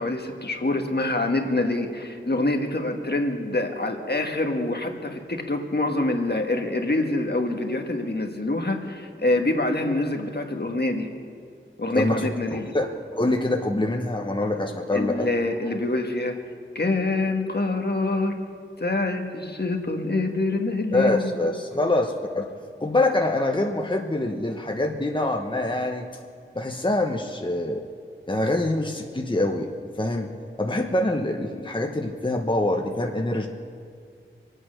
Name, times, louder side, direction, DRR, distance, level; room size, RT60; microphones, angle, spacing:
voice 1, 0.0-11.1 11.8-12.7 14.9-16.3 16.7-18.3 18.8-21.5, left 2 dB, 55° left, 3 dB, 1.6 m, -26 dB
voice 2, 11.9-12.9 13.2-15.3 20.9-22.5 22.8-26.1 26.5-27.8 28.3-29.7 30.0-30.3 30.6-33.5, left 2 dB, 25° left, 2 dB, 1.1 m, -25 dB
24.0 x 9.2 x 6.5 m, 2.3 s
wide cardioid pair, 50°, 20 cm